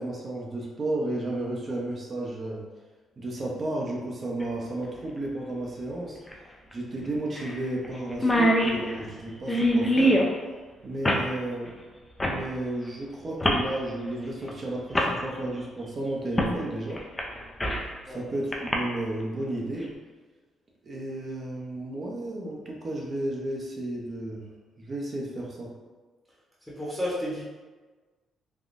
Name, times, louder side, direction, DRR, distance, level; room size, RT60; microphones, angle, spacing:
voice 1, 0.0-2.6 3.2-6.2 6.7-10.2 10.8-11.7 12.2-17.0 18.1-19.9 20.8-24.5 24.8-25.7, right 1 dB, 40° right, -2 dB, 0.7 m, -33 dB
sound 1, 4.4-4.5 6.3-6.4 6.7-6.8 7.4-7.6 7.8-7.9 8.1-10.3 11.0-11.3 12.2-12.4 13.4-13.7 14.5-14.6 14.9-15.1 16.4-16.6 17.0-17.9 18.5-18.7, equal, 15° left, 0.5 m, -23 dB
voice 2, 26.7-27.4, equal, ahead, -9 dB, 0.9 m, -31 dB
3.4 x 2.2 x 2.5 m, 1.3 s
cardioid pair, 90°, 0 cm